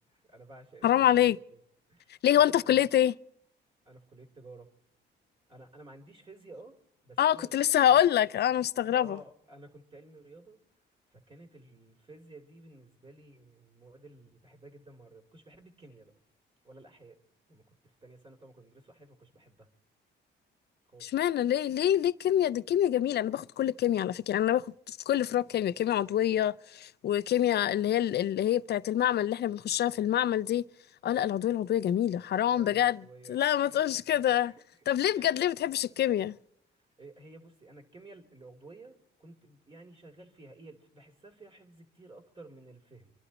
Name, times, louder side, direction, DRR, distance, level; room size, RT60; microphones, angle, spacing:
voice 1, 0.1-1.6 1.9-2.9 3.8-4.7 5.5-6.8 7.0-8.0 8.9-10.6 11.1-16.1 16.6-17.2 17.5-19.7 20.9-21.1 29.9-30.2 32.5-34.0 34.4-34.8 35.2-35.5 36.7-43.1, right 2 dB, 25° right, 2.8 m, -53 dB
voice 2, 0.8-1.4 2.2-3.1 7.2-9.2 21.0-30.6 31.0-33.0 33.3-34.5 34.9-36.4, left 11 dB, 55° left, 0.5 m, -26 dB
26.5 x 11.5 x 4.1 m
cardioid pair, 90°, 20 cm